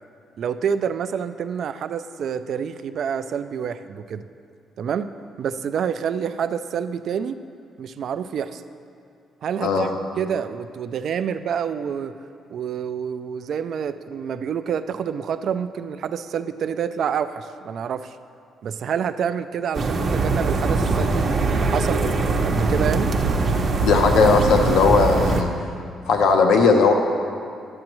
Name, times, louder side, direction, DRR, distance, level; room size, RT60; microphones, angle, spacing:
voice 1, 0.4-4.3 4.8-5.1 5.4-7.4 7.8-8.6 9.4-12.1 12.5-18.2 18.6-23.1, right 7 dB, 65° right, 11 dB, 0.3 m, -27 dB
sound 1, 19.7-25.4, right 3 dB, 50° right, 0.7 m, -22 dB
voice 2, 23.8-25.5 26.1-26.9, left 4 dB, 80° left, 4 dB, 0.7 m, -17 dB
10.5 x 7.6 x 3.0 m, 2.4 s
cardioid pair, 90°, 0 cm